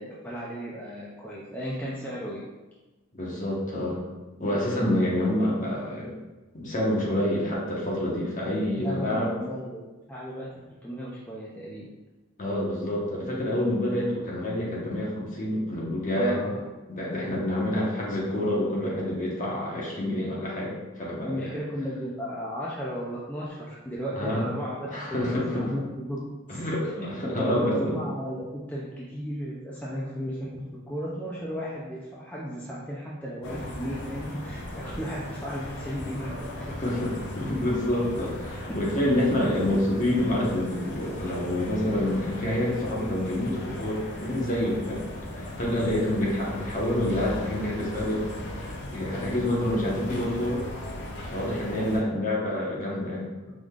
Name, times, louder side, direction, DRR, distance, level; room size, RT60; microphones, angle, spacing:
voice 1, 0.0-2.4 8.8-9.8 10.1-10.5 10.8-11.9 16.2-16.6 17.3-17.5 21.2-36.8 45.9-46.1 49.1-50.1 51.6-52.2, equal, 10° left, -6 dB, 0.4 m, -35 dB
voice 2, 3.1-4.0 4.4-6.1 6.5-9.3 12.4-16.4 16.9-21.5 24.1-24.4 24.9-25.7 26.5-27.9 36.8-45.0 45.4-48.3 48.9-50.6 51.3-53.3, left 1 dB, 40° left, -4 dB, 1.1 m, -27 dB
sound 1, 33.4-52.0, left 1 dB, 55° left, 0.6 m, -37 dB
4.9 x 3.6 x 2.4 m, 1.2 s
head